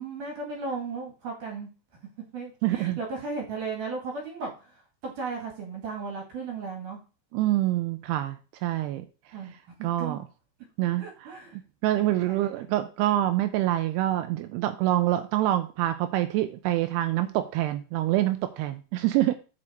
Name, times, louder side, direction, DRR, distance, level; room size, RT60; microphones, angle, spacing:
voice 1, 0.0-1.7 2.3-4.5 5.0-7.0 9.3-9.5 9.8-10.2 11.0-11.6 12.2-12.8, right 4 dB, 55° right, 1 dB, 2.9 m, -35 dB
voice 2, 2.6-3.0 7.3-9.0 9.8-10.2 10.8-11.3 11.8-19.3, right 14 dB, 85° right, 9 dB, 2.3 m, -26 dB
7.9 x 6.3 x 4.5 m, 0.34 s
omnidirectional pair, 5.4 m